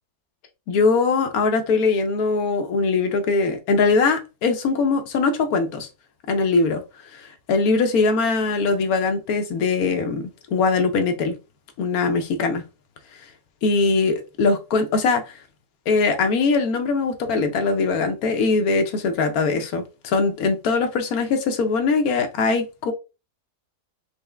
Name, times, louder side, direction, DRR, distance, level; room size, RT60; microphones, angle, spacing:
voice 1, 0.7-5.9 6.3-11.3 11.8-12.6 13.6-15.4 15.9-22.9, left 4 dB, 70° left, 1.1 m, -21 dB
4.6 x 2.0 x 3.2 m
omnidirectional pair, 1.8 m